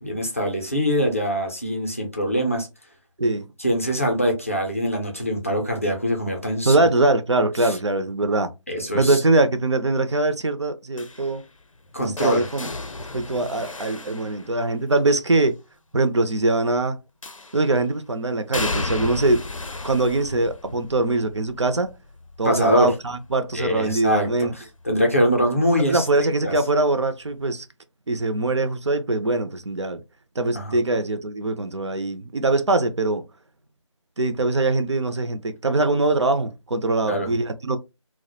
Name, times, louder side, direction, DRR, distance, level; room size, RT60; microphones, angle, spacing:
voice 1, 0.0-2.7 3.6-6.8 7.6-7.8 8.7-9.2 11.9-12.4 22.4-22.9 23.5-26.1 26.4-26.5 30.5-30.7 37.0-37.3, equal, 25° left, 0.4 m, -23 dB
voice 2, 6.7-8.5 8.9-11.5 12.0-12.7 13.1-15.6 15.9-17.0 17.5-19.4 19.8-21.9 22.4-24.5 25.9-27.7 28.1-30.0 30.4-33.2 34.2-37.8, right 2 dB, 60° right, 0.4 m, -22 dB
sound 1, 11.0-15.0 17.2-17.8 18.5-24.3 24.7-25.1 26.3-26.4, left 3 dB, 90° left, 0.5 m, -35 dB
2.2 x 2.0 x 2.8 m
figure-of-eight pair, 165°, 16 cm